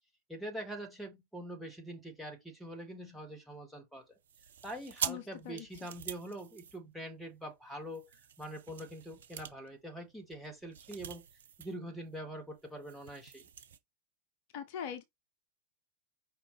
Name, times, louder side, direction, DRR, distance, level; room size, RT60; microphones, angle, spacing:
voice 1, 0.3-4.0 4.6-11.2 11.6-13.5, right 1 dB, ahead, 1.6 m, -44 dB
sound 1, 4.2-7.3 7.9-11.8 12.1-12.2 12.5-13.8, right 8 dB, 65° right, 0.6 m, -44 dB
voice 2, 5.1-5.7 14.5-15.0, left 9 dB, 50° left, 0.6 m, -41 dB
5.1 x 2.8 x 3.3 m
figure-of-eight pair, 90°, 0 cm